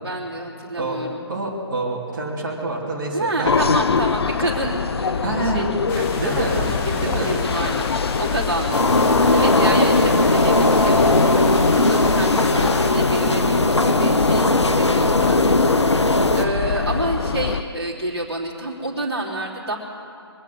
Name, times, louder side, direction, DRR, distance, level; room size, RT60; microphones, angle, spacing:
voice 1, 0.0-1.2 3.1-19.8, right 1 dB, 75° right, -4 dB, 3.1 m, -29 dB
voice 2, 1.3-4.0 5.2-5.6 6.2-6.7 7.0-7.4, right 2 dB, 45° right, -4 dB, 3.2 m, -27 dB
sound 1, 3.4-17.6, left 5 dB, 65° left, 0.6 m, -24 dB
sound 2, 5.9-12.9, left 4 dB, 20° left, 1.4 m, -33 dB
sound 3, 8.7-16.5, left 2 dB, 90° left, 1.0 m, -18 dB
24.0 x 9.2 x 6.3 m, 2.6 s
figure-of-eight pair, 140°, 14 cm